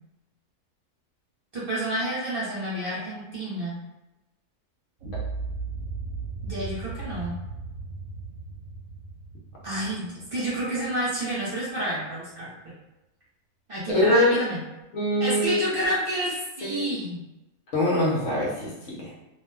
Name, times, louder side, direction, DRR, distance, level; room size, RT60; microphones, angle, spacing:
voice 1, 1.5-3.8 6.4-7.4 9.6-12.5 13.7-14.6 15.2-17.2, right 1 dB, 45° right, -8 dB, 1.0 m, -29 dB
sound 1, 5.0-11.1, right 4 dB, 70° right, 1.0 m, -36 dB
voice 2, 13.9-14.3 14.9-15.7 16.6-16.8 17.7-19.1, left 1 dB, 60° left, -5 dB, 0.9 m, -23 dB
2.6 x 2.2 x 3.3 m, 0.98 s
omnidirectional pair, 1.6 m